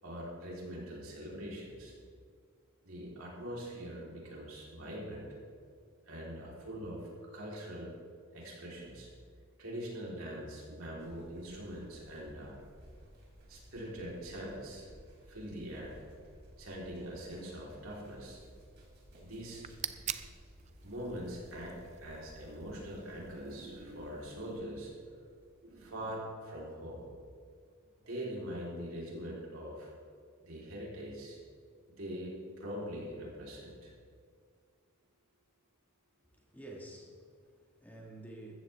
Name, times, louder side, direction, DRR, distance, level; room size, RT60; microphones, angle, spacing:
voice 1, 0.0-1.9 2.8-5.4 6.0-7.9 8.3-9.1 9.6-12.5 13.5-14.9 15.3-16.0 16.6-18.4 19.2-19.6 20.8-25.2 25.6-27.1 28.0-29.9 30.4-31.4 31.9-33.9, equal, 80° right, -4 dB, 3.9 m, -43 dB
sound 1, 11.0-25.9, equal, 55° right, 3.9 m, -58 dB
sound 2, 19.4-24.6, right 10 dB, 35° right, 0.4 m, -46 dB
voice 2, 36.2-38.5, right 1 dB, 10° left, -1 dB, 1.8 m, -50 dB
15.0 x 14.0 x 3.6 m, 2.1 s
head